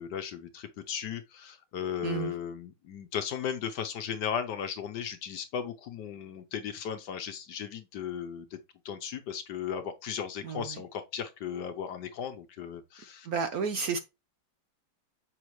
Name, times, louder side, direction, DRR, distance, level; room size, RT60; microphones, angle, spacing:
voice 1, 0.0-8.6 8.8-13.3, left 8 dB, 65° left, 1.2 m, -36 dB
voice 2, 2.0-2.3 10.4-10.8 13.3-14.0, right 5 dB, 60° right, 1.0 m, -31 dB
7.9 x 6.0 x 3.1 m
omnidirectional pair, 2.2 m